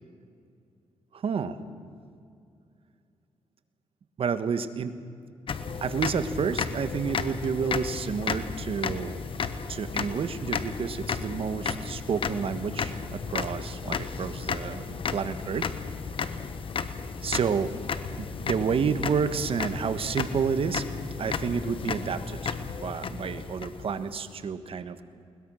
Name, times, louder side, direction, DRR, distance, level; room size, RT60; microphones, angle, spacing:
voice 1, 1.1-1.6 4.2-4.9 5.8-9.2 9.7-15.7 17.2-17.7 18.2-20.8 21.2-22.5 22.8-25.0, right 6 dB, 60° right, 11 dB, 1.4 m, -30 dB
sound 1, 5.5-24.2, left 5 dB, 55° left, 1.2 m, -33 dB
21.5 x 20.0 x 6.4 m, 2.4 s
cardioid pair, 75°, 11 cm